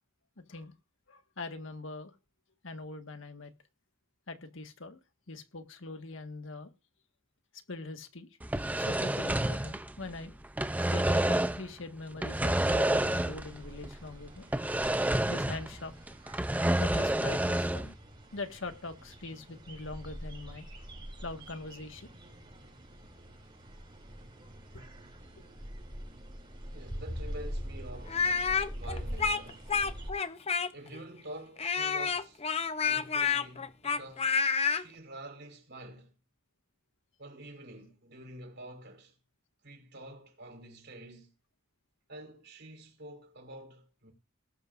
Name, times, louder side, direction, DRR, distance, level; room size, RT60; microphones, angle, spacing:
voice 1, 0.4-0.7 1.1-2.1 2.6-3.5 4.3-5.0 5.3-6.7 7.7-8.3 8.8-10.3 10.9-14.5 15.3-15.9 16.8-18.0 18.3-20.7 21.2-22.1 24.7-24.8, left 3 dB, 65° left, 1.7 m, -42 dB
sound 1, 8.4-10.2 10.4-11.7 12.2-13.6 13.8-13.9 14.5-15.8 16.1-17.9, right 1 dB, 5° right, 0.5 m, -29 dB
sound 2, 12.8-30.1, equal, 25° right, 5.3 m, -44 dB
voice 2, 26.7-28.3 28.7-29.7 30.7-32.4 32.8-34.3 34.7-36.1 37.2-39.1 39.6-41.3 42.1-44.1, right 1 dB, 55° right, 4.7 m, -48 dB
Speech, 28.1-31.0 31.6-34.8, left 5 dB, 30° left, 0.7 m, -29 dB
19.5 x 12.5 x 2.6 m
head